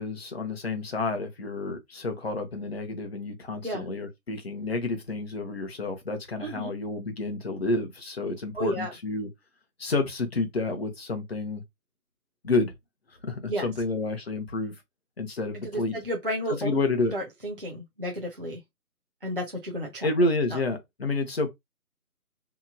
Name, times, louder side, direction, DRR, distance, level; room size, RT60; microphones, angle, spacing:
voice 1, 0.0-9.3 9.8-11.6 12.4-12.7 13.2-14.7 15.2-15.9 16.5-17.1 20.0-21.5, left 2 dB, 40° left, 0.7 m, -29 dB
voice 2, 6.4-6.7 8.5-8.9 13.5-13.7 15.7-18.6 19.2-20.1 20.5-20.6, right 1 dB, 40° right, 0.4 m, -32 dB
2.9 x 2.5 x 2.3 m
figure-of-eight pair, 165°, 46 cm